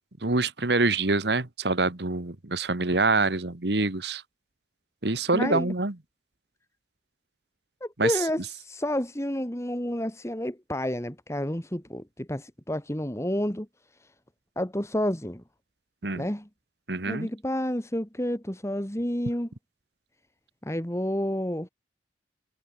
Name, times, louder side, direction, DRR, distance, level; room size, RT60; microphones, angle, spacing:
voice 1, 0.2-4.2 5.0-5.9 8.0-8.1 16.0-16.2 16.9-17.3, right 3 dB, 70° right, 1.6 m, -25 dB
voice 2, 5.3-5.7 7.8-13.7 14.0-14.1 14.6-15.4 16.1-16.5 17.1-19.5 20.6-21.7, left 1 dB, 15° left, 2.4 m, -30 dB
head